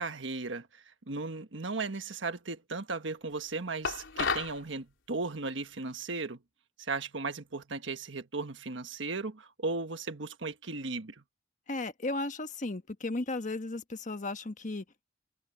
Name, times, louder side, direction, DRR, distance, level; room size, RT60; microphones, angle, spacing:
voice 1, 0.0-6.4 6.8-11.2, right 3 dB, 75° right, 1.5 m, -36 dB
sound 1, 3.8-4.6, left 5 dB, 75° left, 4.3 m, -31 dB
voice 2, 11.7-14.8, left 2 dB, 40° left, 1.3 m, -35 dB
head